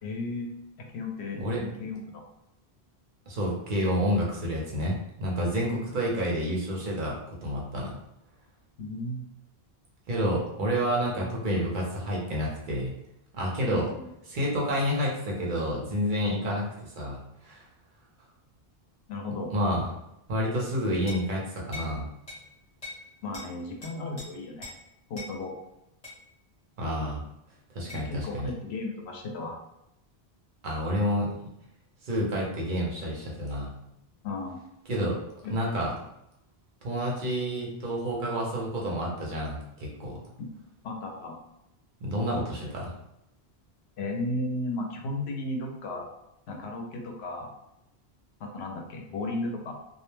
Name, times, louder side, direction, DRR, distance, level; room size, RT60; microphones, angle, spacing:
voice 1, 0.0-0.5 0.9-2.2 5.5-5.8 8.8-9.3 13.7-14.1 19.1-19.5 23.2-24.7 25.1-25.5 27.9-29.6 34.2-34.6 35.4-35.6 40.4-40.5 40.8-41.4 44.0-46.1 46.5-47.5 48.4-49.7, left 2 dB, 85° left, 2 dB, 0.9 m, -34 dB
voice 2, 3.3-7.9 10.1-12.9 13.3-13.9 14.3-17.6 19.5-19.9 20.3-22.1 26.8-27.2 27.7-28.5 30.6-31.3 32.0-33.7 34.9-35.2 35.5-35.9 36.8-40.2 42.0-42.9, equal, 55° right, -3 dB, 0.8 m, -29 dB
sound 1, 21.1-21.3 21.7-21.9 22.3-22.4 22.8-23.0 23.3-23.5 23.8-24.3 24.6-24.8 25.2-25.3 26.0-26.2 27.9-28.1, left 2 dB, 35° left, 1.1 m, -41 dB
2.2 x 2.1 x 3.1 m, 0.83 s
omnidirectional pair, 1.1 m